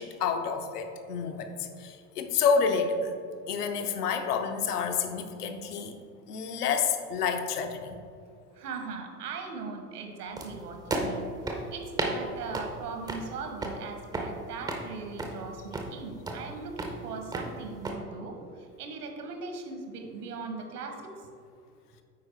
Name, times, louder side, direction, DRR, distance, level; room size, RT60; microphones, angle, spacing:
voice 1, 0.0-3.1 3.5-6.0 6.3-8.0, left 6 dB, 70° left, 7 dB, 0.8 m, -29 dB
voice 2, 8.6-11.2 11.7-18.4 18.8-21.0, right 4 dB, 70° right, 4 dB, 1.2 m, -39 dB
sound 1, 10.4-17.9, right 2 dB, 10° right, 0.4 m, -35 dB
8.6 x 4.5 x 3.3 m, 2.3 s
figure-of-eight pair, 85°, 49 cm